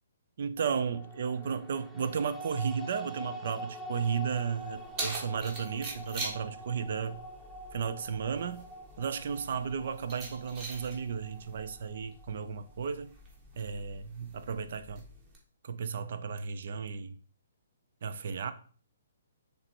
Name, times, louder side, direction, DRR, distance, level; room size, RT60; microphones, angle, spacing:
voice 1, 0.4-7.2 7.7-8.6 9.0-13.1 13.6-15.0 15.6-17.1 18.0-18.5, right 6 dB, 60° right, 0.6 m, -34 dB
sound 1, 0.6-12.8, equal, 10° right, 1.0 m, -46 dB
Keys jangling, 4.3-15.4, right 2 dB, 30° right, 1.8 m, -44 dB
6.7 x 3.3 x 4.4 m
hypercardioid pair, 145°, 0 cm